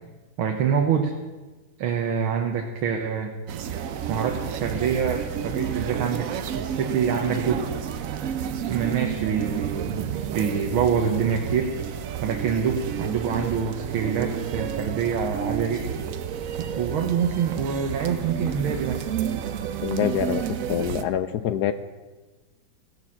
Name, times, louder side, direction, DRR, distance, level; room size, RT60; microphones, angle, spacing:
voice 1, 0.4-1.1 1.8-3.3 4.1-6.3 6.6-7.7 8.7-11.7 12.2-15.9 16.7-19.0, right 7 dB, 85° right, 3 dB, 1.9 m, -25 dB
sound 1, 3.5-21.0, right 8 dB, 70° right, 0.8 m, -31 dB
voice 2, 19.8-21.7, left 10 dB, 75° left, 11 dB, 0.9 m, -26 dB
16.5 x 6.8 x 7.1 m, 1.3 s
omnidirectional pair, 2.2 m